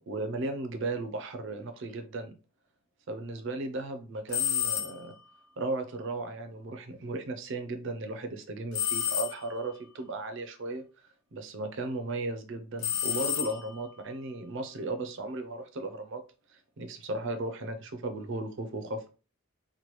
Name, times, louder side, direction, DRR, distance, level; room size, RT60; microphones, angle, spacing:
voice 1, 0.1-2.3 3.1-5.2 5.6-10.8 11.3-16.2 16.5-19.1, right 2 dB, 55° right, 0.5 m, -36 dB
sound 1, 4.3-5.2 8.7-9.7 12.8-13.9, left 10 dB, 75° left, 0.6 m, -31 dB
3.0 x 2.2 x 3.0 m
head